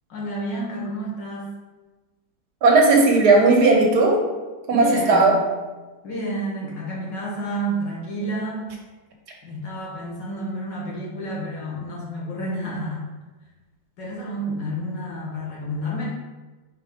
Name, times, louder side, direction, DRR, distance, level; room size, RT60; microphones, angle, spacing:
voice 1, 0.1-1.5 4.7-5.4 6.0-8.7 9.4-13.0 14.0-16.0, right 1 dB, 85° left, -4 dB, 2.2 m, -30 dB
voice 2, 2.6-4.2 4.7-5.4, right 3 dB, 65° right, 0 dB, 1.6 m, -16 dB
4.5 x 4.4 x 5.1 m, 1.2 s
omnidirectional pair, 1.9 m